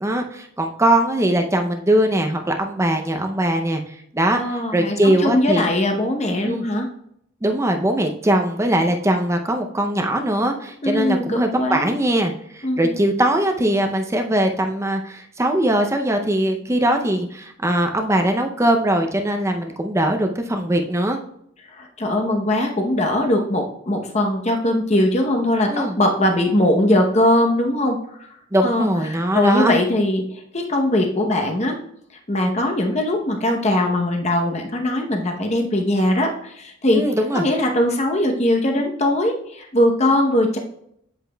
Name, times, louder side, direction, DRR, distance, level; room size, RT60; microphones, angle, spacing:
voice 1, 0.0-3.8 4.1-5.7 6.4-6.6 7.4-21.2 25.7-26.0 28.5-29.8 36.9-37.5, right 1 dB, 15° right, 4 dB, 0.5 m, -21 dB
voice 2, 4.4-6.9 10.8-12.0 12.6-12.9 21.7-28.0 28.6-31.8 32.3-37.0 37.3-40.6, left 1 dB, 30° left, 2 dB, 0.8 m, -20 dB
8.2 x 8.0 x 2.3 m, 0.72 s
head